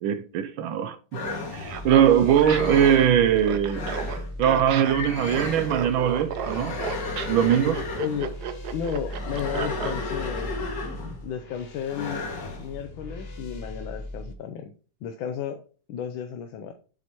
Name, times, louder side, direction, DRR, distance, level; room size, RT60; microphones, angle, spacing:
voice 1, 0.0-1.2 1.5-3.8 4.4-6.8 7.3-7.9, right 9 dB, 80° right, 1.4 m, -21 dB
sound 1, 1.1-1.9 2.4-3.1 3.6-4.3 4.8-5.8 6.3-8.3 9.0-11.2 11.9-12.7, left 3 dB, 60° left, 2.4 m, -34 dB
sound 2, 1.5-14.3, left 1 dB, 40° left, 0.9 m, -38 dB
Laughter, 1.6-10.0, right 8 dB, 60° right, 1.2 m, -33 dB
voice 2, 8.0-8.3 8.7-10.5 11.2-12.2 12.5-14.7 15.0-15.6 15.9-16.7, left 8 dB, 75° left, 1.4 m, -33 dB
7.6 x 7.5 x 3.0 m
omnidirectional pair, 2.2 m